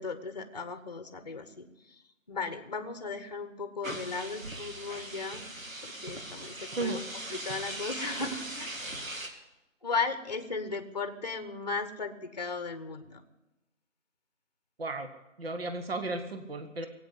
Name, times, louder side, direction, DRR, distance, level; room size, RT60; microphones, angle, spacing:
voice 1, 0.0-2.0 2.3-5.5 5.8-9.2 9.8-13.2, left 4 dB, 30° left, 10 dB, 1.0 m, -36 dB
sound 1, 3.8-9.3, right 1 dB, 85° right, 2.7 m, -40 dB
voice 2, 14.8-15.1 15.4-16.9, right 2 dB, 45° right, 8 dB, 1.4 m, -34 dB
18.0 x 8.6 x 8.4 m, 0.98 s
figure-of-eight pair, 165°, 40 cm